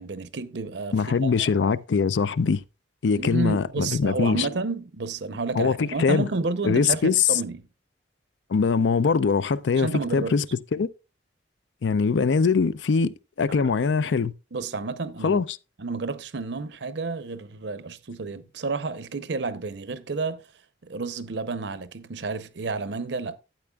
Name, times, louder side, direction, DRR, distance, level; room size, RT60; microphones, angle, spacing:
voice 1, 0.0-1.0 1.2-1.3 3.2-7.6 9.8-10.3 13.6-13.7 14.5-15.4 15.8-20.5 20.8-23.4, right 3 dB, 75° right, 0.7 m, -30 dB
voice 2, 0.9-2.6 3.0-4.5 5.5-6.3 6.6-7.4 8.5-10.9 11.8-14.3 15.2-15.6, left 5 dB, 85° left, 0.5 m, -22 dB
12.0 x 8.7 x 2.3 m
head